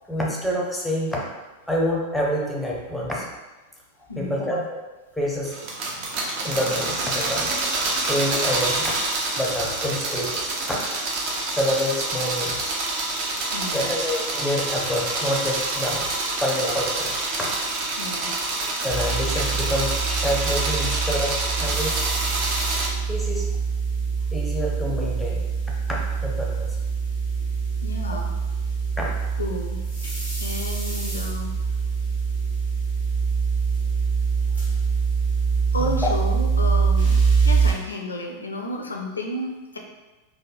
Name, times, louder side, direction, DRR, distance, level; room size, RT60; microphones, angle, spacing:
voice 1, 0.1-1.2 1.7-3.2 4.2-4.8 5.1-5.6 6.4-7.5 8.1-8.9 9.4-10.8 11.5-12.6 13.7-16.1 16.4-17.1 17.4-17.5 18.8-22.0 23.1-23.5 24.3-25.4 25.9-26.8 28.1-28.2 29.0-29.1 35.8-36.1, left 1 dB, 5° left, -3 dB, 0.6 m, -27 dB
voice 2, 4.1-4.7 13.5-14.0 18.0-18.4 27.4-27.5 27.8-28.3 29.4-29.8 30.4-31.5 35.7-39.8, left 1 dB, 75° left, 2 dB, 0.4 m, -32 dB
sound 1, 5.5-22.9, right 2 dB, 45° right, 0.5 m, -27 dB
sound 2, 18.9-37.7, right 5 dB, 85° right, 1.3 m, -24 dB
3.1 x 2.1 x 2.5 m, 1.2 s
figure-of-eight pair, 90°, 0 cm